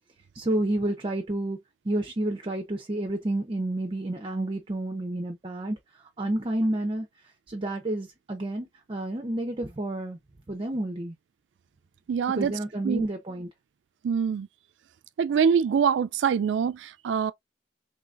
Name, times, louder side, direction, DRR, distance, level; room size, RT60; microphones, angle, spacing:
voice 1, 0.3-1.6 1.8-5.8 6.2-7.1 7.5-10.2 10.5-11.1 12.3-13.5, right 1 dB, 30° right, 0.6 m, -30 dB
voice 2, 12.1-12.5 12.8-13.1 14.0-14.5 15.2-17.3, right 7 dB, 90° right, 0.3 m, -24 dB
3.8 x 3.3 x 2.4 m
head